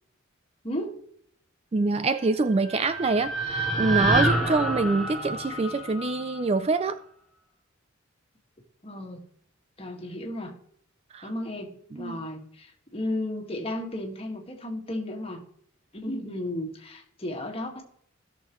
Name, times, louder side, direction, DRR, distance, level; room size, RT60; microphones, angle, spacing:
voice 1, 0.6-1.0 8.8-9.2 9.8-10.6 11.2-15.4 15.9-17.8, left 1 dB, 30° left, 1.8 m, -34 dB
voice 2, 1.7-7.0 11.1-11.3 11.9-12.2, right 3 dB, 30° right, 0.3 m, -25 dB
sound 1, 2.4-6.6, right 1 dB, ahead, 2.7 m, -28 dB
16.5 x 6.6 x 3.1 m
head